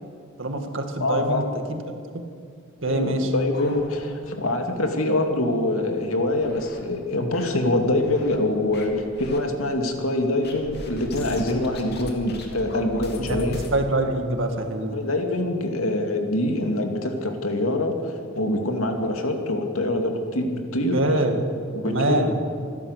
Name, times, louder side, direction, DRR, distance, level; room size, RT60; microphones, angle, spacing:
voice 1, 0.4-1.8 2.1-2.2 2.8-3.3 13.2-15.0 20.9-21.4 21.9-22.4, right 2 dB, 65° right, 5 dB, 2.2 m, -25 dB
voice 2, 0.9-1.4 2.8-13.6 14.9-21.0 21.7-22.4, left 1 dB, 85° left, 3 dB, 2.5 m, -25 dB
sound 1, 3.5-4.4 4.7-4.8 5.2-5.3 5.9-6.8 7.3-8.4 8.7-9.4 10.4-13.8, left 1 dB, 50° left, 2.7 m, -39 dB
27.0 x 12.0 x 8.3 m, 2.3 s
head